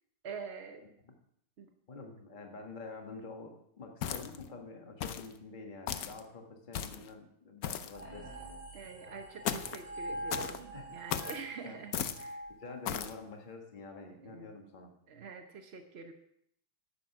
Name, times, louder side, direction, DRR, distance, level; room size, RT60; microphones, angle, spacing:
voice 1, 0.2-0.9 1.6-1.7 8.7-12.4 14.1-14.5 15.1-16.1, right 5 dB, 65° right, 5 dB, 0.6 m, -46 dB
voice 2, 0.8-1.1 1.9-8.3 10.7-10.9 11.6-11.8 12.5-14.9, left 3 dB, 25° left, 3 dB, 1.4 m, -47 dB
sound 1, 4.0-4.5 5.0-5.3 5.9-6.2 6.7-7.1 7.6-8.0 9.4-9.8 10.3-10.6 11.1-11.4 11.9-12.3 12.8-13.1, left 9 dB, 75° left, 0.8 m, -36 dB
sound 2, 7.9-13.4, right 1 dB, 30° right, 3.4 m, -45 dB
10.5 x 8.8 x 5.9 m, 0.71 s
omnidirectional pair, 2.4 m